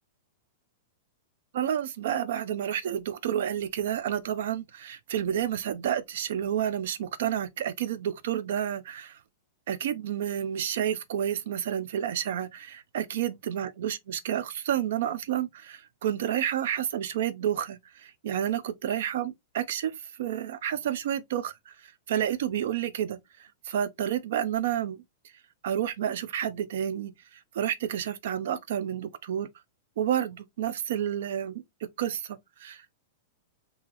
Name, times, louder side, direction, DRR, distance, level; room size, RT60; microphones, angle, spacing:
voice 1, 1.5-9.2 9.7-25.0 25.6-29.5 30.0-31.6 32.0-32.8, right 10 dB, 65° right, 0.5 m, -30 dB
3.9 x 2.8 x 2.9 m
supercardioid pair, 170°, 0 cm